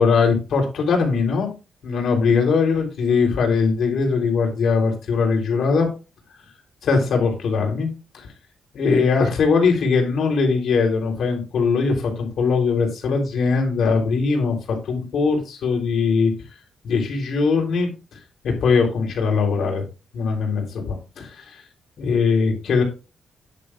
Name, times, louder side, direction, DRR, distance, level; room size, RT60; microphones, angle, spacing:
voice 1, 0.0-1.5 1.8-5.9 6.8-7.9 8.1-8.3 8.7-16.3 16.8-17.9 18.4-19.8 20.1-21.6 22.0-22.8, left 5 dB, 70° left, 1 dB, 3.8 m, -20 dB
10.0 x 9.2 x 2.5 m, 0.30 s
cardioid pair, 140°, 0 cm